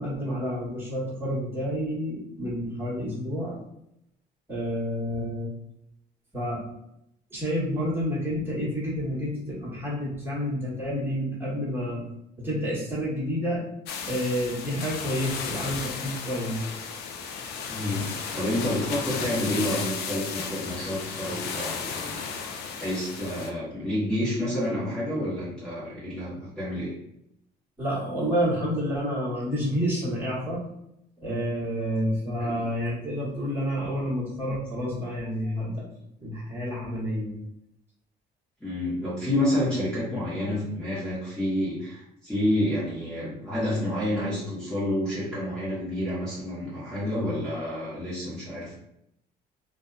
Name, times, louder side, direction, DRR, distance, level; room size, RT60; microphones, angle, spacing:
voice 1, 0.0-3.6 4.5-5.5 6.3-6.6 7.3-12.0 12.4-13.6 14.1-16.7 27.8-30.6 31.2-35.9 36.2-37.3, equal, 15° right, -8 dB, 1.3 m, -29 dB
sound 1, 13.9-23.5, left 5 dB, 75° left, 0.4 m, -34 dB
voice 2, 17.7-18.1 18.3-22.4 22.8-26.9 32.4-32.7 35.4-35.5 38.6-48.7, left 1 dB, 5° left, -11 dB, 1.1 m, -29 dB
2.6 x 2.3 x 2.4 m, 0.79 s
cardioid pair, 110°, 17 cm